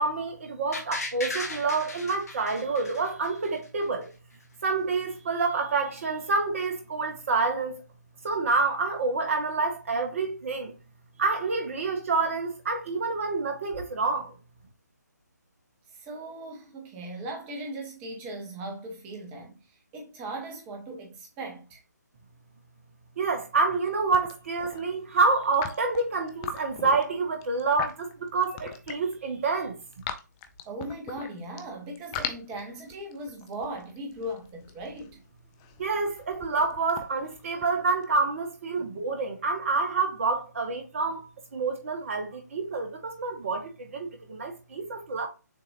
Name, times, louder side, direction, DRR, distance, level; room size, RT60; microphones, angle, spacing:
voice 1, 0.0-4.1 4.6-7.8 8.2-10.7 11.2-14.3 23.2-29.7 35.8-45.3, right 4 dB, 45° right, 1.5 m, -28 dB
sound 1, 0.7-3.7 4.0-4.1, left 2 dB, 60° left, 1.6 m, -36 dB
voice 2, 15.9-21.8 30.6-35.2 38.8-38.9, right 1 dB, 15° right, 1.3 m, -38 dB
sound 2, 23.7-23.9 24.1-24.8 25.4-29.1 29.5-31.6 31.9-38.0, left 8 dB, 15° left, 0.4 m, -39 dB
6.7 x 2.9 x 2.7 m
figure-of-eight pair, 145°, 10 cm